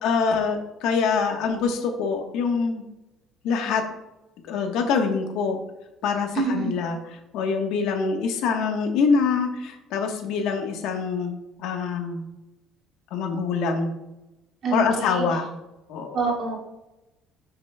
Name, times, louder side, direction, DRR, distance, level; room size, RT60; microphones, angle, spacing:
voice 1, 0.0-2.8 3.4-3.8 4.4-5.6 6.0-12.2 13.1-13.9 14.7-15.5 15.9-16.2, left 5 dB, 75° left, 4 dB, 1.2 m, -25 dB
voice 2, 6.4-6.7 14.6-14.8 15.1-15.2 16.1-16.6, right 4 dB, 45° right, -3 dB, 2.3 m, -25 dB
10.0 x 5.9 x 2.3 m, 0.97 s
cardioid pair, 145°, 0 cm